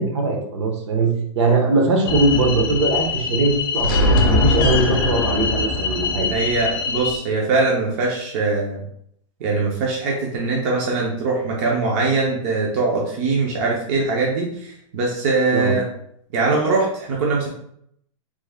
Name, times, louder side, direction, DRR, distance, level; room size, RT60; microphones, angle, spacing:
voice 1, 0.0-6.3 15.5-15.8, right 2 dB, 60° right, 1 dB, 0.9 m, -20 dB
sound 1, 2.1-7.2, left 3 dB, 45° left, 0.5 m, -21 dB
voice 2, 6.3-8.8 9.4-15.8 16.3-17.5, right 3 dB, 25° right, -2 dB, 0.4 m, -22 dB
3.1 x 2.1 x 3.4 m, 0.70 s
supercardioid pair, 175°, 17 cm